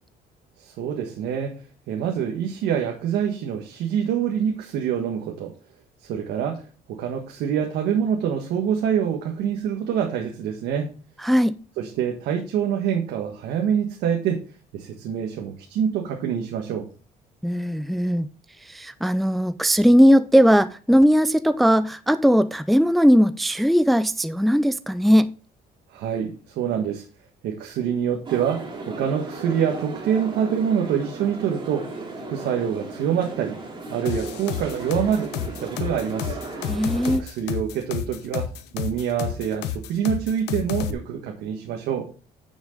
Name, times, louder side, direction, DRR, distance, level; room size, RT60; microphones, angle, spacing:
voice 1, 0.6-1.6 1.9-5.5 6.0-10.9 11.8-14.4 14.7-16.9 25.9-27.0 27.4-33.6 33.9-36.4 37.2-42.1, right 8 dB, 80° right, 1.4 m, -26 dB
voice 2, 11.2-11.5 17.4-18.3 18.6-25.3 36.7-37.2, equal, ahead, 0.4 m, -18 dB
sound 1, 28.2-37.2, right 3 dB, 30° right, 2.6 m, -36 dB
sound 2, 34.1-40.9, left 10 dB, 85° left, 0.9 m, -30 dB
9.6 x 6.3 x 3.8 m
cardioid pair, 110°, 17 cm